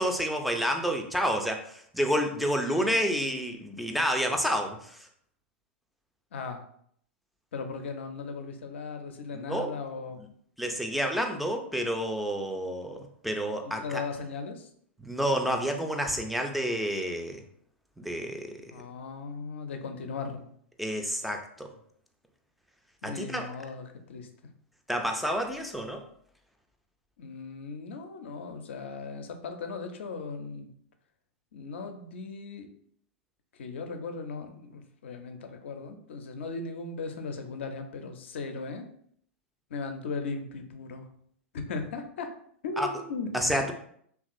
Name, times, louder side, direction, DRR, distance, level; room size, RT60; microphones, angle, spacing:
voice 1, 0.0-5.1 9.3-9.7 10.6-14.0 15.0-17.4 18.0-18.6 20.8-21.7 23.0-23.5 24.9-26.0 42.8-42.9 43.3-43.7, equal, ahead, 3 dB, 0.3 m, -29 dB
voice 2, 2.6-3.0 6.3-6.6 7.5-10.2 13.6-14.7 18.7-20.5 23.0-24.3 27.2-30.7 31.5-32.7 33.5-38.9 39.7-41.1 41.5-42.3 42.6-43.3, left 4 dB, 65° left, 6 dB, 0.4 m, -37 dB
2.9 x 2.3 x 2.5 m, 0.65 s
figure-of-eight pair, 95°, 7 cm